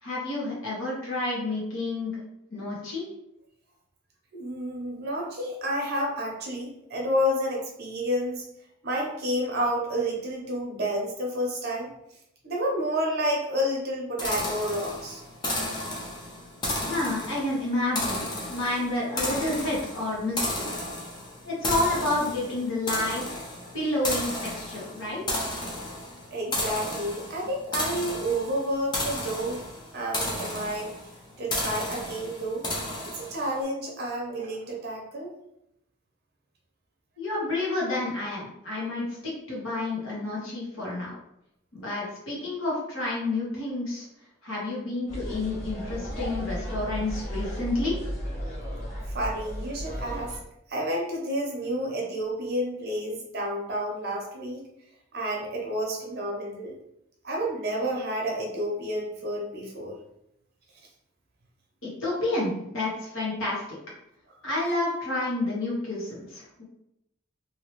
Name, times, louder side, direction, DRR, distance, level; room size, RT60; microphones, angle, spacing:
voice 1, 0.0-2.1 2.5-3.1 16.9-20.7 21.4-23.4 23.7-25.2 37.2-41.1 41.7-44.1 44.4-47.9 61.8-63.8 64.4-66.6, left 2 dB, 70° left, -5 dB, 1.2 m, -30 dB
voice 2, 4.3-8.4 8.8-11.9 12.4-15.2 26.3-29.6 29.9-30.9 31.4-32.6 33.1-35.3 49.1-50.4 50.7-54.6 55.1-56.8 57.2-60.0, equal, 50° right, -1 dB, 0.8 m, -30 dB
sound 1, 14.2-33.6, left 1 dB, 20° left, 0.6 m, -33 dB
sound 2, 45.1-50.4, equal, 40° left, 1.3 m, -34 dB
3.0 x 2.7 x 3.0 m, 0.81 s
head